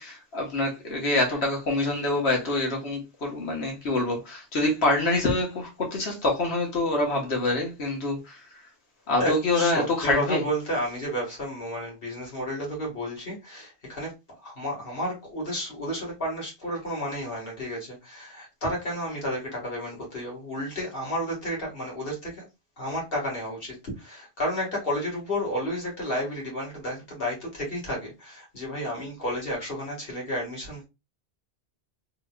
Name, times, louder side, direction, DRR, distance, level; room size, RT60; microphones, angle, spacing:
voice 1, 0.0-8.4 9.1-10.4, left 2 dB, 80° left, 1.4 m, -26 dB
voice 2, 9.1-14.1 14.4-22.4 22.8-30.9, equal, 60° left, 1.9 m, -31 dB
3.8 x 2.9 x 2.2 m
omnidirectional pair, 1.1 m